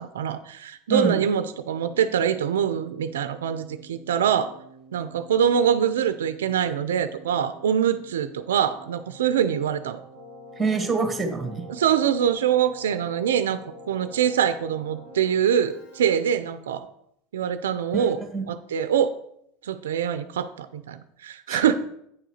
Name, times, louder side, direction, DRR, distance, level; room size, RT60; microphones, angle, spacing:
voice 1, 0.0-4.6 4.9-10.0 11.7-16.9 17.3-18.2 18.5-19.1 19.6-21.7, right 8 dB, 85° right, 11 dB, 0.5 m, -24 dB
Keyboard (musical), 1.7-16.7, left 1 dB, 85° left, 3.2 m, -47 dB
voice 2, 10.6-11.6 17.9-18.1 18.3-18.5 21.5-21.8, right 4 dB, 15° right, 5 dB, 1.9 m, -26 dB
8.8 x 3.9 x 6.4 m, 0.72 s
hypercardioid pair, 100°, 0 cm